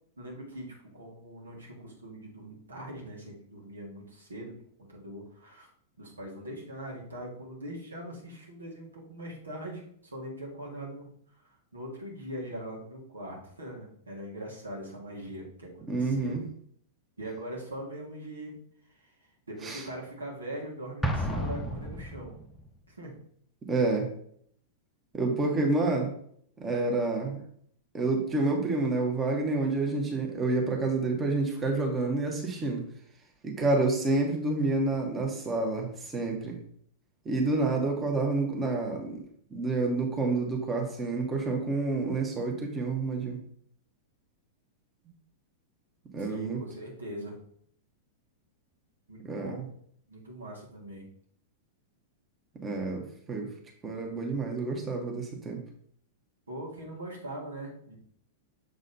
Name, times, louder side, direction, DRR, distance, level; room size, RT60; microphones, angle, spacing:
voice 1, 0.2-4.5 4.8-5.7 6.0-11.1 11.4-16.3 17.2-18.5 19.0-19.1 19.5-22.3 22.9-23.1 46.2-47.4 49.1-49.7 50.1-51.1 56.5-58.0, right 1 dB, 85° right, -2 dB, 2.1 m, -41 dB
voice 2, 15.9-16.4 19.6-19.8 23.7-24.1 25.1-26.1 26.6-27.4 27.9-32.8 33.4-36.6 37.2-39.2 39.5-43.4 46.1-46.6 49.2-49.6 52.6-53.5 53.8-55.6, right 3 dB, 20° right, 1 dB, 1.4 m, -28 dB
Explosion, 21.0-22.7, equal, 5° left, 0.9 m, -32 dB
6.7 x 4.0 x 4.0 m, 0.64 s
figure-of-eight pair, 100°, 0 cm